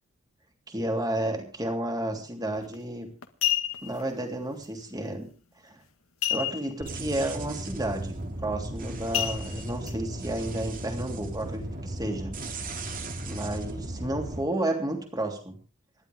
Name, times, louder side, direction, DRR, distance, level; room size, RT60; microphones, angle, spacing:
voice 1, 0.7-3.1 3.8-5.3 5.6-5.8 6.3-12.3 13.3-15.6, right 1 dB, 20° right, 3 dB, 3.2 m, -31 dB
sound 1, 2.5-2.8 3.2-4.0 6.2-6.9 7.2-7.3 7.8-8.0 9.1-9.9 10.5-10.6, left 13 dB, 70° left, 1.7 m, -29 dB
sound 2, 6.8-14.4, right 1 dB, 40° right, 2.5 m, -36 dB
27.0 x 11.5 x 3.6 m, 0.35 s
head